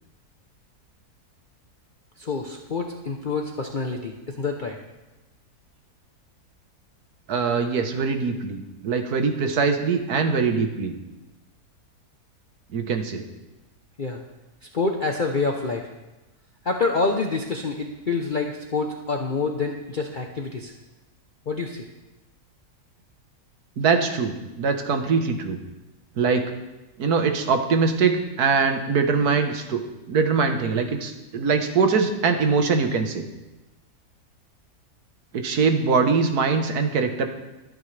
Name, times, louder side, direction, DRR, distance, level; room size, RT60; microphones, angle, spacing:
voice 1, 2.2-4.8 14.0-14.2 14.7-15.9 16.6-20.7 21.5-21.9, left 4 dB, 40° left, 2 dB, 0.9 m, -27 dB
voice 2, 7.3-11.0 12.7-13.3 23.8-25.6 26.2-26.5 27.0-33.2 35.3-37.3, right 5 dB, 85° right, 6 dB, 1.7 m, -22 dB
23.5 x 9.0 x 3.3 m, 1.1 s
omnidirectional pair, 1.6 m